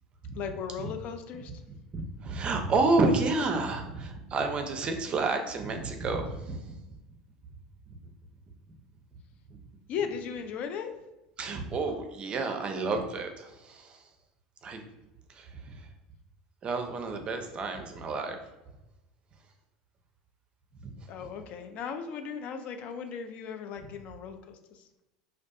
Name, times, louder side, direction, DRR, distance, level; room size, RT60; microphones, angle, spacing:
voice 1, 0.3-1.6 9.9-10.9 21.1-24.9, left 6 dB, 55° left, 6 dB, 0.3 m, -37 dB
voice 2, 1.9-6.8 7.9-8.0 9.5-9.6 11.4-14.0 14.6-14.8 15.3-15.9 16.6-18.4 20.8-21.3, right 3 dB, 35° right, 5 dB, 0.4 m, -30 dB
2.5 x 2.3 x 2.3 m, 1.0 s
hypercardioid pair, 85°, 3 cm